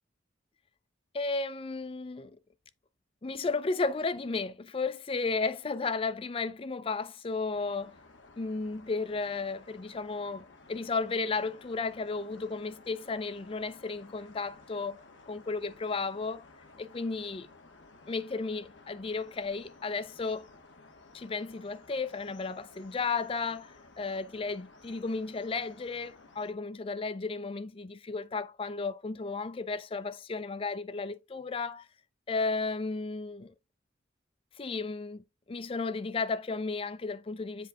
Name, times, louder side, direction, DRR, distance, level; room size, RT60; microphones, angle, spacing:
voice 1, 1.1-2.4 3.2-8.0 8.4-16.4 16.8-17.5 18.1-20.5 21.1-31.9 32.3-33.5 34.6-37.7, left 4 dB, 30° left, 0.4 m, -34 dB
sound 1, 7.5-26.5, left 3 dB, 70° left, 1.3 m, -55 dB
7.6 x 3.8 x 3.4 m
head